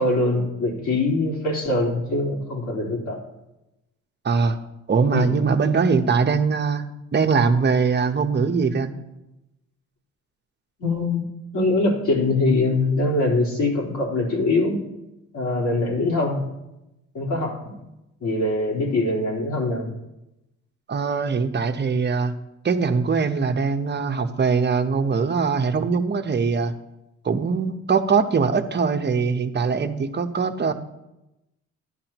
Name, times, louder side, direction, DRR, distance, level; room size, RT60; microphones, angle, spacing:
voice 1, 0.0-3.3 5.1-5.4 10.8-11.2 11.5-14.8 15.3-16.4 17.1-17.7 18.2-19.9, left 2 dB, 70° left, -2 dB, 4.2 m, -23 dB
voice 2, 4.2-4.6 4.9-6.8 7.1-8.9 20.9-22.3 22.6-26.7 27.2-30.7, right 5 dB, 35° right, 7 dB, 1.0 m, -21 dB
12.5 x 11.0 x 3.0 m, 0.94 s
cardioid pair, 90°, 30 cm